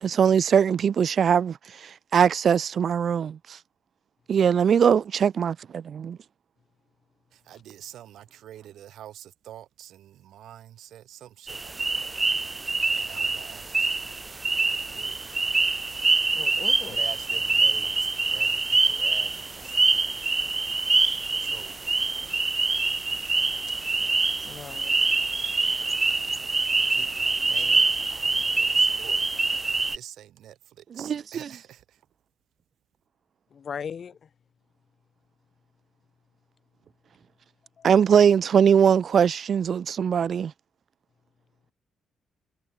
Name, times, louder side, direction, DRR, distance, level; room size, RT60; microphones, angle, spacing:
voice 1, 0.0-3.6 4.3-6.2 31.0-31.2 37.8-40.5, right 7 dB, 55° right, 0.4 m, -21 dB
voice 2, 7.3-12.1 12.9-14.2 14.6-15.3 16.8-20.1 21.2-21.9 26.9-32.0, right 11 dB, 75° right, 6.0 m, -47 dB
sound 1, 11.5-30.0, right 3 dB, 25° right, 0.8 m, -25 dB
voice 3, 16.3-17.0 24.4-25.0 33.5-34.2 37.8-37.9, left 7 dB, 50° left, 1.5 m, -38 dB
cardioid pair, 90°, 0 cm